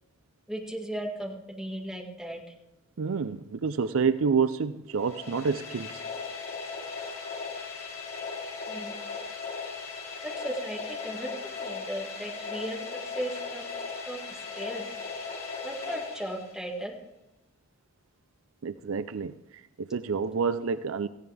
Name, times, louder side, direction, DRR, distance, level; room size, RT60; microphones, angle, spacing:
voice 1, 0.5-2.4 8.7-9.0 10.2-13.8 14.1-14.9 15.6-16.9, right 1 dB, ahead, -1 dB, 1.9 m, -36 dB
voice 2, 3.0-6.0 18.6-21.1, right 5 dB, 65° right, 13 dB, 0.5 m, -28 dB
sound 1, 4.9-16.9, left 4 dB, 40° left, 3.6 m, -38 dB
17.5 x 15.0 x 3.5 m, 0.94 s
head